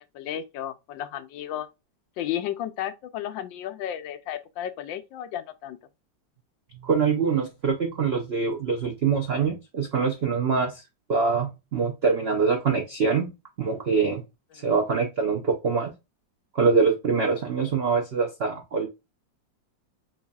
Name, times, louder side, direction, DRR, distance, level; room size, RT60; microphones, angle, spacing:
voice 1, 0.1-1.7 2.2-5.8, left 11 dB, 80° left, 1.3 m, -33 dB
voice 2, 6.8-10.8 11.1-13.3 13.6-14.2 14.6-15.9 16.5-18.9, right 5 dB, 70° right, 0.5 m, -24 dB
4.0 x 3.5 x 2.2 m
omnidirectional pair, 2.1 m